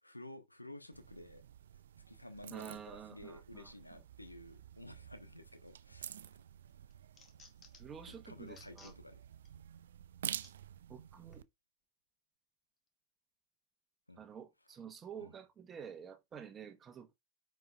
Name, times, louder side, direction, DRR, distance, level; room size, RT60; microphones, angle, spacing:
voice 1, 0.0-1.4 1.7-6.4 8.0-9.2 14.1-14.2 14.6-14.8 15.2-15.3, left 1 dB, 90° left, 0.9 m, -53 dB
sound 1, 0.9-11.4, right 10 dB, 65° right, 0.3 m, -49 dB
voice 2, 2.5-3.7 7.8-8.9 10.9-11.4 14.2-17.1, right 7 dB, 25° right, 1.1 m, -49 dB
sound 2, 5.9-6.3 6.7-8.0 8.5-9.0 9.5-9.6 10.4-10.5 11.3-11.5, left 5 dB, 25° left, 1.9 m, -60 dB
9.2 x 4.7 x 2.3 m
figure-of-eight pair, 90°, 0 cm